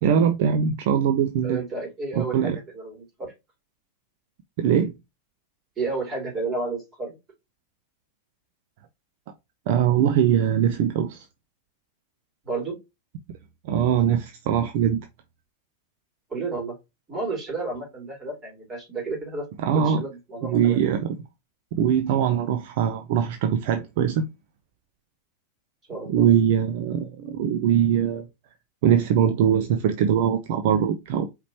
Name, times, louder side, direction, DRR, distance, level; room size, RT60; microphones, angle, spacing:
voice 1, 0.0-1.6 2.2-2.6 4.6-4.9 9.7-11.3 13.6-15.0 19.6-20.0 20.4-21.2 21.7-24.3 26.1-28.3 28.8-31.3, right 8 dB, 50° right, 0.5 m, -22 dB
voice 2, 1.4-3.3 5.8-7.1 12.4-12.8 16.3-16.8 17.1-19.4 19.7-20.8 25.9-26.2, right 3 dB, 25° right, 3.1 m, -31 dB
4.9 x 3.2 x 2.9 m
figure-of-eight pair, 90°, 0 cm